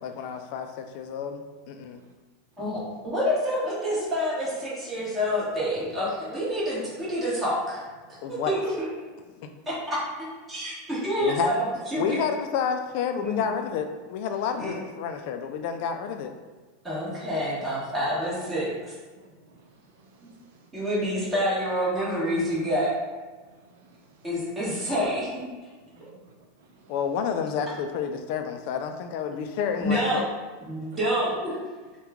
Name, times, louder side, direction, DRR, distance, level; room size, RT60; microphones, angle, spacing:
voice 1, 0.0-2.0 8.2-8.5 9.4-9.5 11.2-11.6 12.0-16.3 26.9-30.2, left 6 dB, 60° left, 6 dB, 0.3 m, -30 dB
voice 2, 2.6-7.8 8.3-8.7 9.9-10.0 10.5-12.2 13.2-13.4 14.6-14.7 16.8-18.9 20.7-22.9 24.2-25.4 29.8-30.2 30.7-31.6, equal, 10° right, -9 dB, 1.2 m, -27 dB
voice 3, 19.2-19.6 20.0-20.6 23.7-24.2 25.9-26.9 30.9-31.0, right 3 dB, 75° right, 2 dB, 0.6 m, -56 dB
2.9 x 2.2 x 3.5 m, 1.3 s
supercardioid pair, 130°, 0 cm